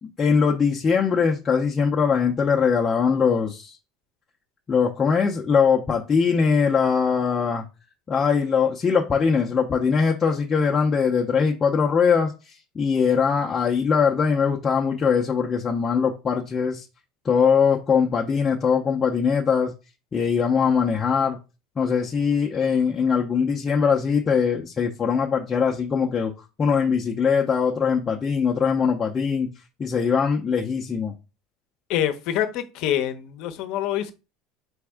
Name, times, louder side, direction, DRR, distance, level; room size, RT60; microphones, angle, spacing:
voice 1, 0.0-3.8 4.7-7.7 8.1-16.9 17.2-19.7 20.1-21.4 21.8-26.3 26.6-29.5 29.8-31.1, left 6 dB, 25° left, 0.7 m, -21 dB
voice 2, 31.9-34.1, left 11 dB, 65° left, 0.8 m, -26 dB
4.1 x 3.4 x 3.5 m
supercardioid pair, 120°, 0 cm